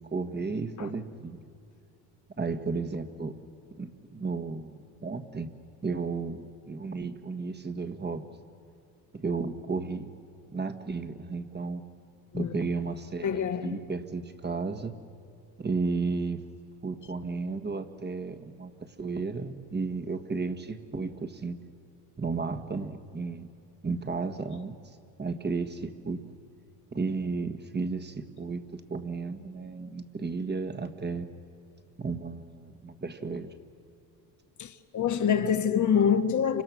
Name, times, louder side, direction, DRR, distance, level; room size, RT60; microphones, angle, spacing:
voice 1, 0.0-1.4 2.4-3.4 3.8-5.5 5.8-8.3 9.1-10.1 10.5-11.8 12.3-14.9 15.6-16.4 16.8-21.6 22.2-23.5 23.8-24.8 25.2-26.2 26.9-31.3 32.0-33.5, right 4 dB, 20° right, 1.5 m, -33 dB
voice 2, 13.2-13.8 34.6-36.6, left 7 dB, 40° left, 1.5 m, -26 dB
29.0 x 26.0 x 6.2 m
supercardioid pair, 85°, 45 cm